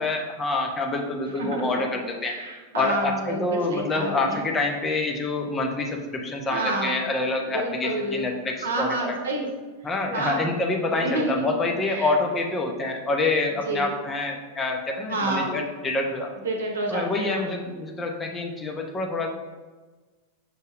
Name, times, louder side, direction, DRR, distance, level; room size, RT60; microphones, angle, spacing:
voice 1, 0.0-2.3 2.7-9.1 9.8-16.3 16.9-19.3, left 2 dB, 20° left, 2 dB, 0.6 m, -27 dB
voice 2, 1.4-2.0 2.2-4.4 6.5-7.0 7.4-8.3 8.6-9.5 10.1-10.5 10.9-12.1 13.6-13.9 15.1-15.6 16.4-17.5, right 2 dB, 70° right, 1 dB, 0.8 m, -29 dB
6.1 x 2.2 x 3.3 m, 1.3 s
figure-of-eight pair, 90°, 0 cm